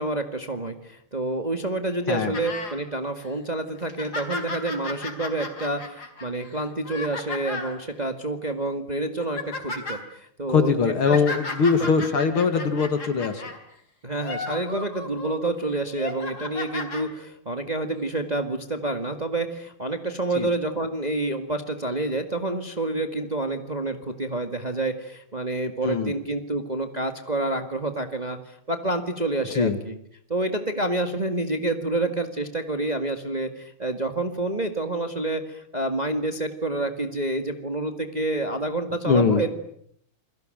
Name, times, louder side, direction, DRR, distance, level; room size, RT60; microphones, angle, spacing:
voice 1, 0.0-11.2 11.8-11.9 14.0-30.0 30.3-39.5, right 2 dB, 20° right, 7 dB, 2.0 m, -28 dB
sound 1, 2.3-2.8 3.2-3.3 3.8-7.8 8.5-8.7 9.0-10.0 10.8-13.6 14.1-15.4 15.8-17.0 18.0-18.1, left 3 dB, 45° left, 4.5 m, -35 dB
voice 2, 10.5-13.4 20.4-20.5 25.8-26.1 29.5-29.8 39.1-39.4, left 5 dB, 75° left, 9 dB, 2.9 m, -22 dB
29.0 x 22.5 x 9.1 m, 0.68 s
omnidirectional pair, 2.4 m